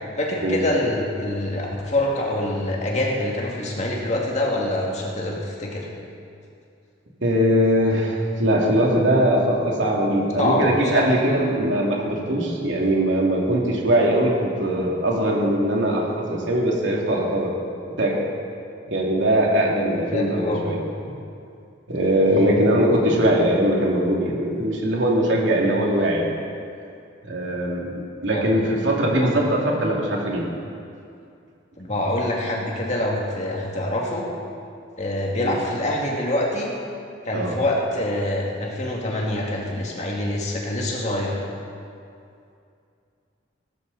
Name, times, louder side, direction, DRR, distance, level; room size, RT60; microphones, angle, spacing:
voice 1, 0.2-5.9 10.4-11.0 20.1-20.6 22.3-22.5 28.3-28.5 29.1-29.3 31.8-34.3 35.0-36.7 37.2-41.4, left 1 dB, 40° left, -2 dB, 2.3 m, -25 dB
voice 2, 7.2-17.5 18.0-18.2 18.9-20.8 21.9-26.3 27.2-30.4 35.4-35.6 37.3-37.5, right 1 dB, 80° right, -2 dB, 2.6 m, -21 dB
18.0 x 13.0 x 4.1 m, 2.5 s
head